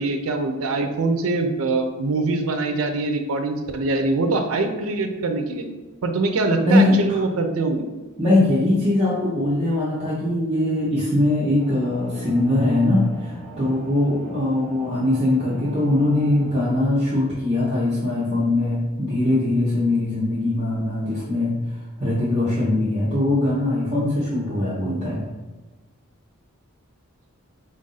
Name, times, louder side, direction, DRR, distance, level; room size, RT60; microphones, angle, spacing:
voice 1, 0.0-5.6 6.0-7.8 24.8-25.0, right 3 dB, 70° right, 6 dB, 0.5 m, -23 dB
voice 2, 6.6-7.0 8.2-21.6 22.0-25.3, left 1 dB, 30° right, -8 dB, 0.8 m, -21 dB
sound 1, 11.6-16.6, equal, 5° left, 0.8 m, -39 dB
4.0 x 2.5 x 3.9 m, 1.2 s
head